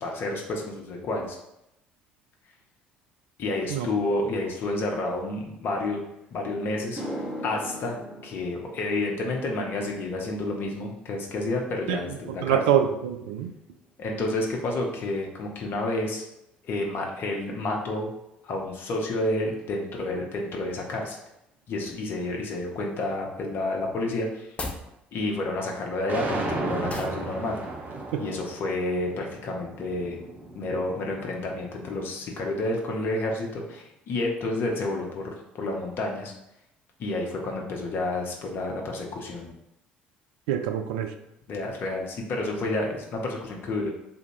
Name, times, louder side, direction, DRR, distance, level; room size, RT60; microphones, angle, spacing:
voice 1, 0.0-1.4 3.4-6.0 6.3-7.0 7.4-8.0 8.2-12.6 14.0-16.2 16.6-18.1 18.4-21.2 21.7-24.5 25.1-27.6 28.2-30.2 30.5-36.3 37.0-39.5 41.5-43.9, left 2 dB, 45° left, 0 dB, 0.9 m, -30 dB
sound 1, 6.2-6.3 6.8-15.3 15.6-16.0 19.6-19.7 21.3-21.4 21.7-21.9 22.1-22.7, equal, 10° right, 1.4 m, -43 dB
voice 2, 12.3-13.5 28.1-28.2 40.5-41.1, right 10 dB, 65° right, 7 dB, 0.4 m, -25 dB
sound 2, 24.4-24.9 26.9-27.2, left 2 dB, 25° left, 0.5 m, -34 dB
sound 3, 26.1-32.2, right 2 dB, 30° right, 0.7 m, -35 dB
3.5 x 2.7 x 4.5 m, 0.85 s
figure-of-eight pair, 55°, 5 cm